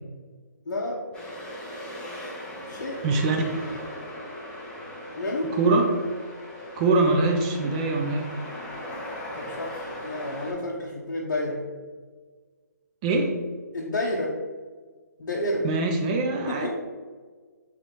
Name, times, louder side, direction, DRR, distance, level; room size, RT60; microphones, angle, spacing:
voice 1, 0.7-1.0 2.7-3.0 5.2-5.6 9.3-11.6 13.7-14.4 15.2-15.7 16.5-16.7, left 1 dB, 75° left, -2 dB, 0.6 m, -30 dB
sound 1, 1.1-10.5, left 1 dB, 10° left, 0.7 m, -38 dB
voice 2, 3.0-3.5 5.6-5.9 6.8-8.3 13.0-13.4 15.6-16.7, right 3 dB, 25° right, 2 dB, 0.3 m, -23 dB
3.8 x 3.1 x 3.0 m, 1.5 s
hypercardioid pair, 145°, 10 cm